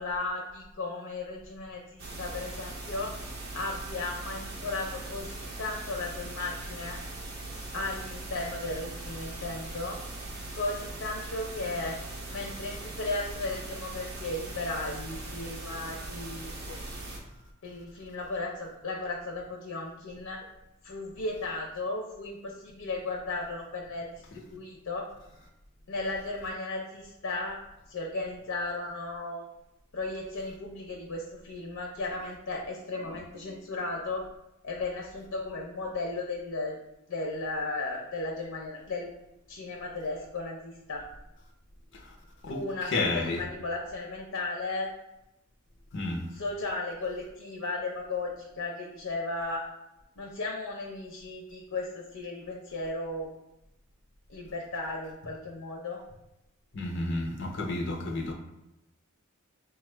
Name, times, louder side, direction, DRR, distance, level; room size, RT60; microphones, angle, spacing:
voice 1, 0.0-3.2 3.5-7.0 7.7-10.0 10.5-12.0 12.3-16.5 17.6-20.4 20.8-25.1 25.9-27.6 27.9-29.5 29.9-34.2 34.6-36.8 37.1-39.1 39.5-41.1 42.5-44.9 46.3-49.6 50.2-53.3 54.3-56.0, left 2 dB, 90° left, 0 dB, 0.6 m, -35 dB
sound 1, 2.0-17.2, right 2 dB, 50° right, 0.8 m, -40 dB
voice 2, 42.9-43.5 45.9-46.2 56.7-58.3, left 2 dB, 60° left, 1 dB, 0.7 m, -31 dB
4.4 x 2.4 x 3.2 m, 0.90 s
head